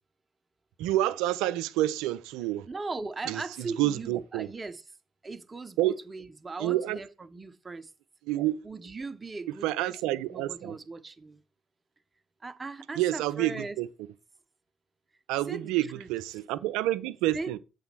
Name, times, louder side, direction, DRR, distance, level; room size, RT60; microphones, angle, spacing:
voice 1, 0.8-2.7 3.3-4.5 5.8-6.0 6.6-7.0 8.3-8.6 9.6-10.8 13.0-13.9 15.3-17.6, right 15 dB, 75° right, 0.5 m, -28 dB
voice 2, 2.7-4.8 5.2-7.9 8.6-9.9 10.3-11.4 12.4-13.8 15.5-16.1 17.3-17.6, right 3 dB, 25° right, 1.0 m, -39 dB
8.0 x 4.1 x 6.0 m
hypercardioid pair, 55°, 0 cm